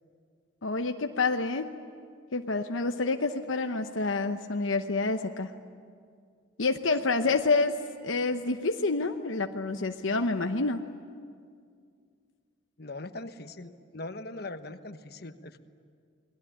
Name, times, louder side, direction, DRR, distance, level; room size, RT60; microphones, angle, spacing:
voice 1, 0.6-1.7 2.3-5.5 6.6-7.8 8.0-10.8, left 3 dB, 85° left, 5 dB, 1.0 m, -28 dB
voice 2, 12.8-15.6, left 2 dB, 55° left, 9 dB, 1.2 m, -41 dB
29.0 x 20.5 x 10.0 m, 2.2 s
head